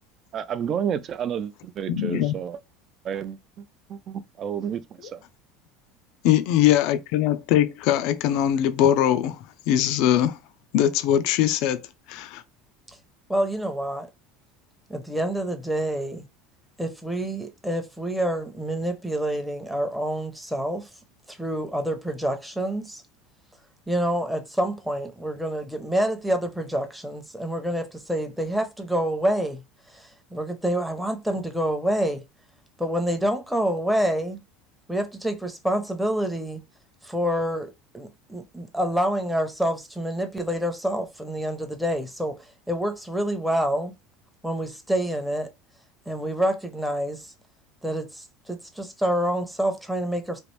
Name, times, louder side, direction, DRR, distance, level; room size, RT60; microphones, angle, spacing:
voice 1, 0.3-2.6 3.0-3.6 3.9-5.2, right 8 dB, 40° right, 0.4 m, -31 dB
voice 2, 1.9-2.4 6.2-9.4 9.7-10.4 10.7-11.8 12.1-12.4, left 11 dB, 65° left, 0.4 m, -21 dB
voice 3, 13.3-14.1 14.9-16.3 16.8-20.9 21.3-23.0 23.9-29.6 29.9-32.2 32.8-34.4 34.9-36.6 37.0-42.4 42.7-43.9 44.4-45.5 46.1-47.3 47.8-50.4, equal, ahead, 0.7 m, -27 dB
3.0 x 2.5 x 3.1 m
supercardioid pair, 130°, 0 cm